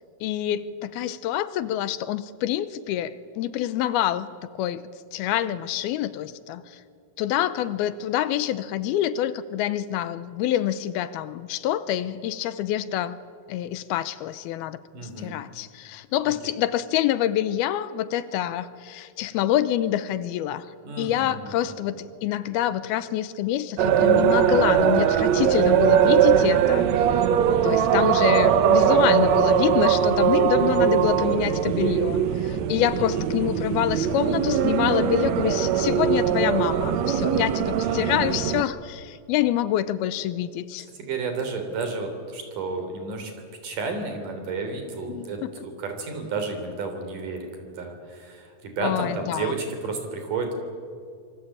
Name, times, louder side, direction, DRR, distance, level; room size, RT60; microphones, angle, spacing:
voice 1, 0.2-4.3 4.6-4.8 5.1-6.6 7.2-13.2 13.5-20.7 21.0-26.9 27.6-40.9 45.1-45.5 48.8-49.5, left 12 dB, 80° left, 15 dB, 2.6 m, -26 dB
voice 2, 14.9-15.3 16.3-16.4 20.8-21.8 27.6-27.9 33.0-33.3 37.8-38.2 41.0-43.3 43.6-50.5, right 3 dB, 55° right, 5 dB, 4.9 m, -32 dB
sound 1, 23.8-38.6, right 8 dB, 80° right, 1.5 m, -21 dB
26.0 x 23.5 x 8.7 m, 2.2 s
omnidirectional pair, 4.5 m